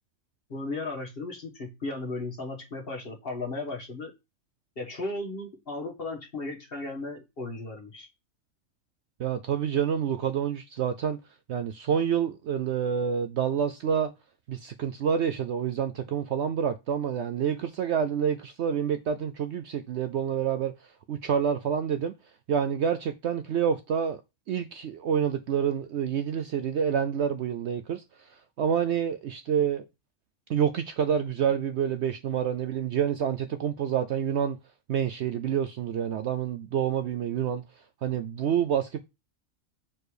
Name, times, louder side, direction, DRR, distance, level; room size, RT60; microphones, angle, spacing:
voice 1, 0.5-4.1 4.8-8.1, left 2 dB, 45° left, 1.6 m, -35 dB
voice 2, 9.2-11.2 11.5-14.1 14.5-20.7 21.1-22.1 22.5-24.2 24.5-28.0 28.6-29.8 30.5-34.6 34.9-37.6 38.0-39.0, right 8 dB, 65° right, 0.7 m, -28 dB
6.7 x 4.3 x 4.9 m
omnidirectional pair, 1.5 m